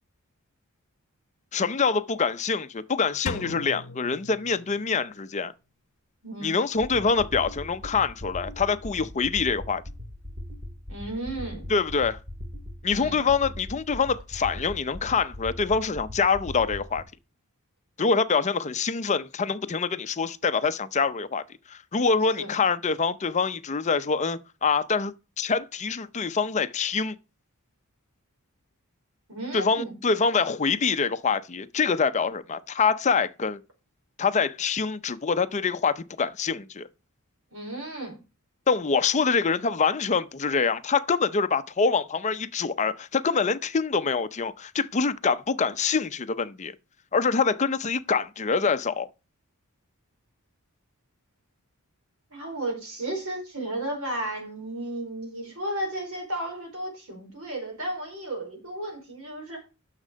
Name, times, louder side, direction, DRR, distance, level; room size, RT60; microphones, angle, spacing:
voice 1, 1.5-5.5 6.4-9.8 11.7-12.2 12.8-17.0 18.0-21.4 21.7-27.1 29.5-33.6 34.2-36.9 38.7-46.7 47.1-49.1, left 5 dB, 30° left, 0.5 m, -25 dB
Drum, 3.3-5.2, left 4 dB, 70° left, 0.7 m, -38 dB
voice 2, 6.2-6.5 10.9-11.7 12.9-13.3 22.4-22.5 29.3-30.0 37.5-38.2 52.3-59.6, right 1 dB, 65° right, 4.6 m, -34 dB
sound 1, 6.7-17.0, left 1 dB, 35° right, 2.5 m, -40 dB
9.9 x 6.6 x 5.1 m
head